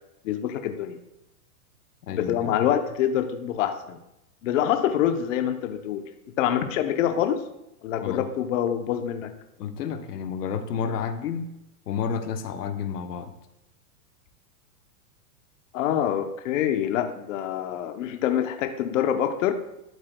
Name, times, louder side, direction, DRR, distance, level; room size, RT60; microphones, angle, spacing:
voice 1, 0.2-1.0 2.1-4.0 4.4-6.0 6.4-7.4 7.8-9.3 15.7-19.5, left 10 dB, 55° left, 7 dB, 0.9 m, -25 dB
voice 2, 2.0-2.5 8.0-8.2 9.6-11.5 11.9-13.3, left 6 dB, 85° left, 8 dB, 1.0 m, -30 dB
11.5 x 8.0 x 2.3 m, 0.88 s
supercardioid pair, 150°, 46 cm